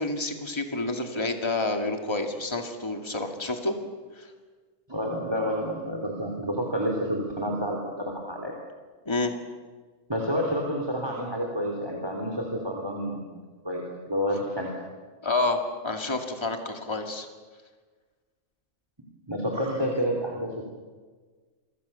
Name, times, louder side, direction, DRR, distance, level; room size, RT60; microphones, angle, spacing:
voice 1, 0.0-3.7 4.2-4.3 9.1-9.3 15.2-17.3, left 2 dB, 20° left, 4 dB, 2.4 m, -29 dB
voice 2, 4.9-8.5 10.1-13.2 13.6-14.7 19.3-20.6, equal, 20° right, 1 dB, 3.5 m, -29 dB
29.0 x 24.0 x 7.0 m, 1.4 s
omnidirectional pair, 1.4 m